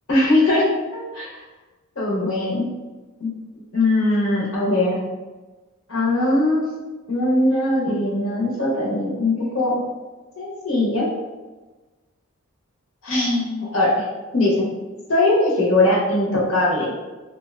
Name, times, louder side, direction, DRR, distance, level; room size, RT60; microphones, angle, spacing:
voice 1, 0.1-1.4 2.0-2.7 3.2-3.3 3.7-5.0 5.9-6.6 7.1-9.8 10.4-11.1 13.0-14.0 14.3-14.7 15.1-16.9, left 2 dB, 65° left, -4 dB, 0.8 m, -20 dB
2.8 x 2.2 x 3.4 m, 1.2 s
head